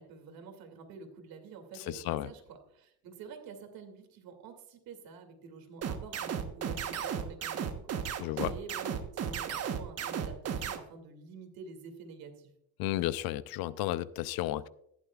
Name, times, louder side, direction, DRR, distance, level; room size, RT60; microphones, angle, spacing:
voice 1, 0.0-12.5, right 5 dB, 65° right, 2.6 m, -48 dB
voice 2, 1.9-2.3 8.2-8.5 12.8-14.7, left 15 dB, 65° left, 0.6 m, -33 dB
sound 1, 5.8-10.8, right 8 dB, 40° right, 1.2 m, -34 dB
14.5 x 11.5 x 2.4 m
cardioid pair, 125°, 39 cm